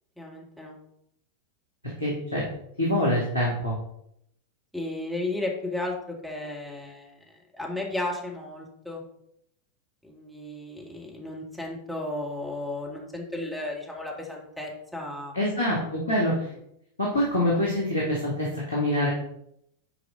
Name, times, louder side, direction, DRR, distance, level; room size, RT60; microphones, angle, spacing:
voice 1, 0.2-0.7 4.7-9.0 10.0-15.3 17.1-17.2, left 2 dB, ahead, -1 dB, 2.1 m, -34 dB
voice 2, 2.0-2.4 2.8-3.8 15.3-16.5 17.0-19.1, left 1 dB, 85° left, -4 dB, 2.3 m, -25 dB
10.5 x 4.7 x 3.9 m, 0.76 s
figure-of-eight pair, 90°, 0 cm